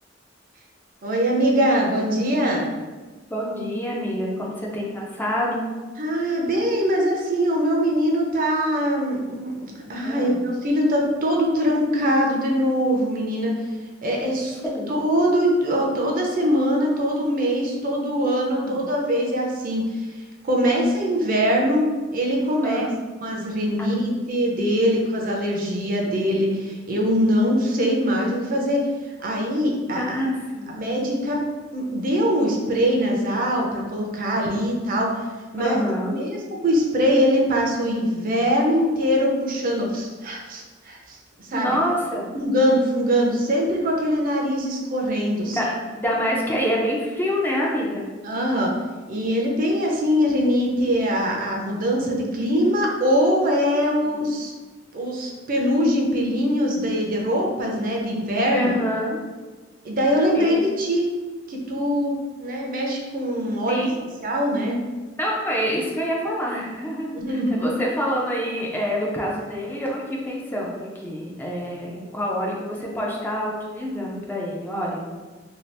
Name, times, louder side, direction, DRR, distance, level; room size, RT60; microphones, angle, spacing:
voice 1, 1.0-2.7 6.0-13.5 14.0-14.6 14.9-20.1 20.4-21.9 22.1-22.9 23.2-28.9 29.2-30.0 30.8-31.4 31.7-35.2 35.5-35.8 36.1-41.7 42.3-45.6 48.2-48.7 49.1-54.5 54.9-58.7 59.8-61.1 61.5-63.8 64.2-64.8 67.1-67.7, equal, 45° right, 0 dB, 0.5 m, -22 dB
voice 2, 3.3-5.6 10.0-10.4 14.6-14.9 18.5-18.8 22.6-22.9 23.8-23.9 29.9-30.8 35.6-36.2 41.5-42.3 45.4-45.7 45.9-48.1 53.9-54.3 58.5-59.2 60.3-60.6 63.7-64.0 65.2-75.0, equal, 10° left, -3 dB, 0.4 m, -27 dB
2.7 x 2.3 x 3.2 m, 1.3 s
head